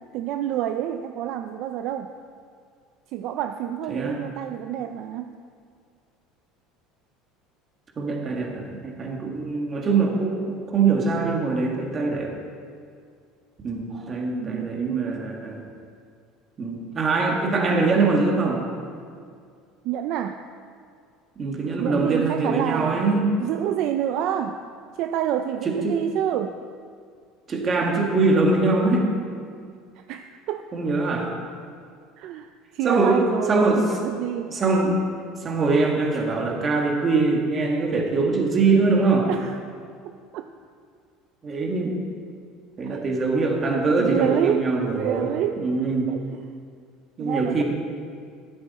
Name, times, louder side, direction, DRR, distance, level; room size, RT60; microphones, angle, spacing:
voice 1, 0.0-2.1 3.1-5.3 14.4-15.2 19.8-20.4 21.8-23.1 23.4-24.6 25.0-26.6 30.0-30.7 32.2-34.6 39.3-39.6 40.3-40.5 42.9-43.0 44.0-45.6 46.1-46.6 47.2-47.6, right 10 dB, 50° right, 7 dB, 0.5 m, -28 dB
voice 2, 8.0-12.3 13.6-15.6 16.6-18.6 21.4-23.4 25.8-26.0 27.5-29.1 30.7-31.3 32.8-33.2 33.5-33.8 34.4-35.1 35.4-39.3 41.4-42.0 42.8-45.3 45.6-46.1 47.2-47.6, right 3 dB, 20° right, 0 dB, 1.7 m, -23 dB
15.5 x 12.0 x 4.2 m, 2.2 s
cardioid pair, 175°, 0 cm